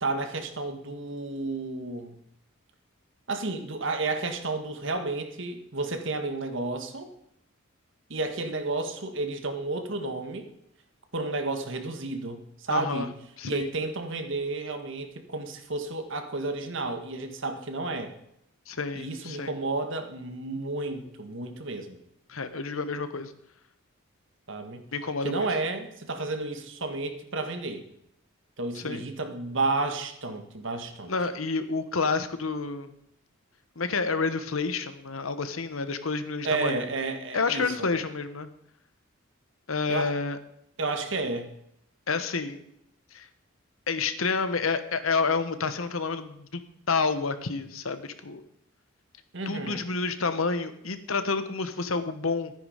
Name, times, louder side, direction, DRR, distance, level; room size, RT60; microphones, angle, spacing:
voice 1, 0.0-2.2 3.3-7.1 8.1-10.5 11.1-13.1 13.4-18.1 18.9-22.0 24.5-24.8 25.2-27.8 28.6-31.1 36.4-37.9 39.9-40.1 40.8-41.5 49.3-49.8, right 3 dB, 65° right, 6 dB, 1.6 m, -31 dB
voice 2, 12.7-13.1 13.4-13.7 18.7-19.5 22.3-23.3 24.9-25.5 28.7-29.0 31.1-32.9 33.8-36.8 37.3-38.5 39.7-40.4 42.1-42.6 43.1-43.3 43.9-46.6 46.9-48.4 49.5-52.5, left 4 dB, 85° left, 11 dB, 1.1 m, -29 dB
13.0 x 9.7 x 5.1 m, 0.75 s
head